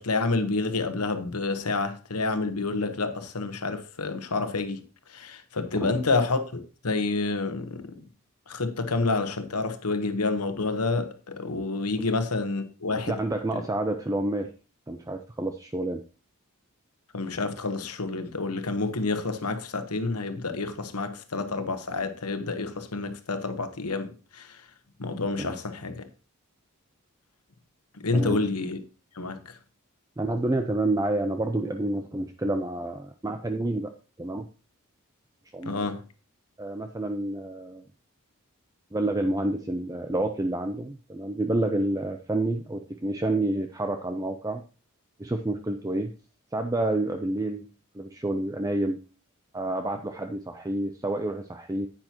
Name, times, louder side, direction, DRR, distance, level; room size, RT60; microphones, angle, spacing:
voice 1, 0.0-4.8 5.1-8.0 8.5-13.2 17.1-24.6 25.0-26.0 28.0-28.8 29.2-29.4 35.6-36.0, left 3 dB, 90° left, 1.2 m, -29 dB
voice 2, 13.0-14.5 14.9-16.0 25.4-25.6 28.1-28.4 30.2-33.9 34.2-34.5 35.5-35.9 36.6-37.8 38.9-44.6 45.2-46.1 46.5-47.7 47.9-49.0 49.5-51.9, right 2 dB, 15° right, 0.4 m, -29 dB
10.5 x 8.8 x 2.9 m
head